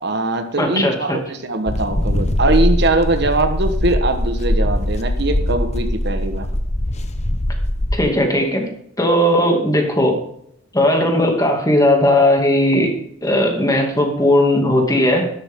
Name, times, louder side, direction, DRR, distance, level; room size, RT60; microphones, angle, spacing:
voice 1, 0.0-6.5, right 2 dB, 55° right, 7 dB, 1.4 m, -21 dB
voice 2, 0.6-1.2 7.9-8.7 9.0-10.2 10.7-12.9 13.2-15.3, left 1 dB, 20° left, 2 dB, 2.5 m, -17 dB
sound 1, 1.7-8.1, left 1 dB, 35° left, 1.0 m, -21 dB
12.5 x 12.5 x 3.8 m, 0.72 s
head